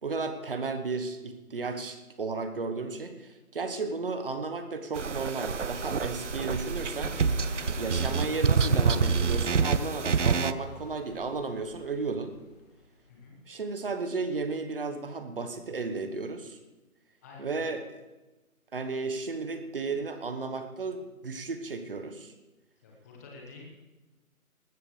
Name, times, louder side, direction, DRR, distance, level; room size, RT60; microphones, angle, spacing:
voice 1, 0.0-7.2 7.8-12.4 13.5-16.6 17.4-17.9 18.7-22.3, right 4 dB, 40° right, 8 dB, 1.2 m, -34 dB
sound 1, 5.0-10.5, right 5 dB, 55° right, 0.6 m, -27 dB
sound 2, 5.4-13.0, left 2 dB, 25° left, 1.8 m, -43 dB
voice 2, 17.2-17.7 22.8-23.6, left 3 dB, 10° left, -2 dB, 1.3 m, -48 dB
20.0 x 15.0 x 3.3 m, 1.1 s
figure-of-eight pair, 155°, 44 cm